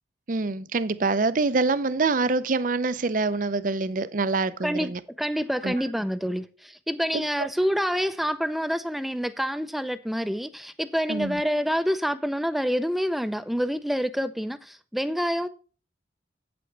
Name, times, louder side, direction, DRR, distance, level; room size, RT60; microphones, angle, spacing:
voice 1, 0.3-5.0 5.6-5.8 7.1-7.5 11.1-11.4, right 3 dB, 45° right, 0.6 m, -25 dB
voice 2, 5.2-15.5, equal, ahead, 0.5 m, -27 dB
9.1 x 7.8 x 3.3 m
head